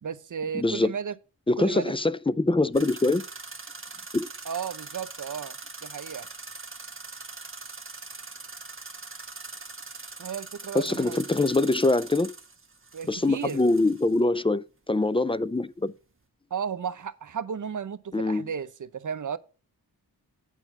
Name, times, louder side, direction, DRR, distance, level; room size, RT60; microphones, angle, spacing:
voice 1, 0.0-1.1 1.6-1.9 4.4-5.6 5.8-6.3 10.2-11.2 12.9-13.6 16.5-19.4, right 7 dB, 50° right, 0.7 m, -34 dB
voice 2, 0.5-0.9 1.5-3.2 4.1-4.3 10.7-12.3 13.1-15.9 18.1-18.5, left 2 dB, 15° left, 0.3 m, -24 dB
sound 1, 2.7-14.2, right 3 dB, 35° right, 1.3 m, -42 dB
9.0 x 4.5 x 5.7 m
cardioid pair, 50°, 39 cm